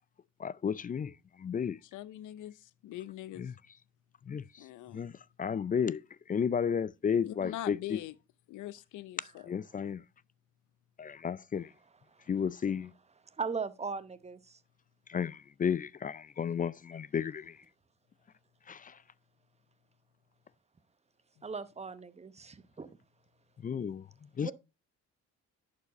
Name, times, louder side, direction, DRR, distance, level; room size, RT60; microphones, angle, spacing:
voice 1, 0.4-1.1 1.4-1.8 4.3-4.4 4.9-5.1 5.4-6.0 6.3-7.8 9.5-10.0 11.0-11.7 12.3-12.9 15.1-17.5 18.7-18.9 23.6-24.0 24.4-24.5, left 7 dB, 30° left, 0.4 m, -32 dB
voice 2, 1.8-3.5 4.6-5.0 7.2-8.2 8.5-9.5 21.4-21.5, left 14 dB, 80° left, 0.6 m, -43 dB
voice 3, 13.4-14.6 21.4-22.9 24.4-24.5, right 5 dB, 20° right, 0.9 m, -38 dB
11.0 x 4.8 x 4.1 m
cardioid pair, 90°, 30 cm